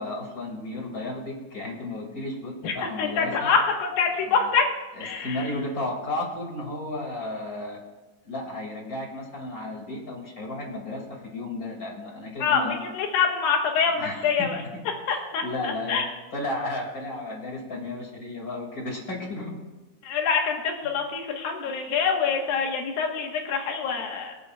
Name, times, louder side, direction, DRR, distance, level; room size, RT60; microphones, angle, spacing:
voice 1, 0.0-3.5 4.3-4.4 5.0-7.8 8.2-12.7 14.0-14.2 15.4-16.0 16.3-19.5, left 2 dB, 30° left, -1 dB, 2.4 m, -33 dB
voice 2, 2.6-4.7 5.0-5.5 12.4-14.6 15.1-16.1 20.0-24.3, left 6 dB, 85° left, 1 dB, 3.2 m, -25 dB
24.5 x 8.6 x 2.4 m, 1.2 s
omnidirectional pair, 4.0 m